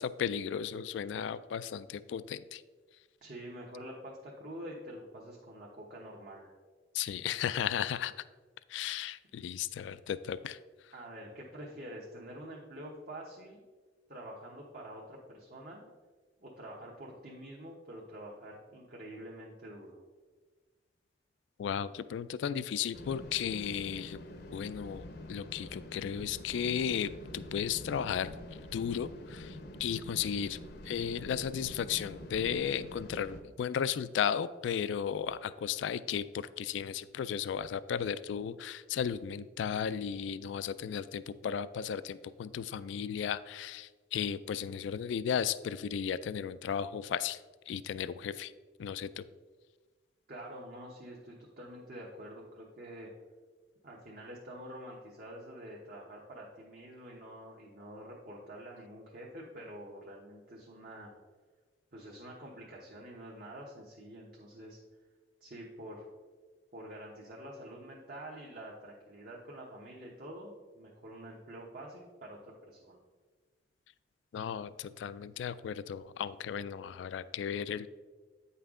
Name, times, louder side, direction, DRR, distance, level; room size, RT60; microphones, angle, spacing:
voice 1, 0.0-2.6 6.9-8.1 8.7-10.6 21.6-24.2 24.5-25.0 25.3-28.3 28.7-30.6 30.8-47.4 47.7-48.5 48.8-49.2 74.3-77.9, left 8 dB, 85° left, 15 dB, 0.3 m, -35 dB
voice 2, 3.2-6.5 10.9-13.6 14.1-15.9 16.4-20.0 50.3-53.1 53.8-61.1 61.9-64.8 65.4-66.1 66.7-73.0, right 1 dB, 50° right, -3 dB, 1.0 m, -47 dB
sound 1, 22.9-33.4, left 1 dB, 60° left, 0.7 m, -46 dB
8.9 x 5.6 x 3.7 m, 1.4 s
head